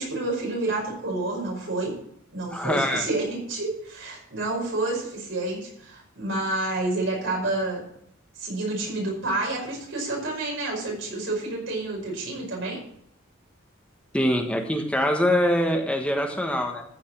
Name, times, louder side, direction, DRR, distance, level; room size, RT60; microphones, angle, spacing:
voice 1, 0.0-2.0 2.3-7.8 8.4-12.9, right 2 dB, 70° right, -2 dB, 5.3 m, -29 dB
voice 2, 2.5-3.0 14.1-16.8, equal, 5° left, 2 dB, 1.3 m, -24 dB
14.5 x 5.3 x 7.4 m, 0.68 s
head